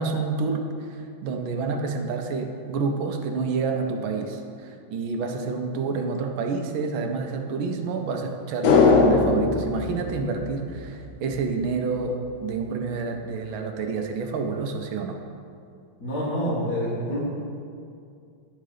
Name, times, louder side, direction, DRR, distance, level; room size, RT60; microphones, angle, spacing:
voice 1, 0.0-15.2, right 4 dB, 75° right, 4 dB, 1.4 m, -28 dB
sound 1, 8.6-11.1 11.4-11.5, left 4 dB, 70° left, 0.8 m, -20 dB
voice 2, 16.0-17.2, equal, 50° left, -9 dB, 1.9 m, -27 dB
10.5 x 3.8 x 4.9 m, 2.4 s
omnidirectional pair, 2.4 m